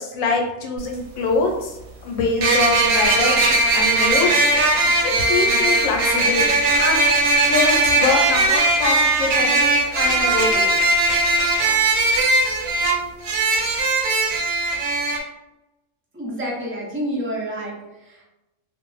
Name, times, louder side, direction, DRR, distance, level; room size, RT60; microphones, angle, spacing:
voice 1, 0.0-4.3 5.0-7.0 7.5-10.7, left 4 dB, 85° left, 1 dB, 1.0 m, -24 dB
sound 1, 0.8-0.9 2.4-15.2, right 2 dB, 85° right, 1.0 m, -19 dB
voice 2, 16.1-18.2, equal, 20° right, -4 dB, 0.3 m, -29 dB
2.4 x 2.0 x 3.0 m, 0.96 s
omnidirectional pair, 1.4 m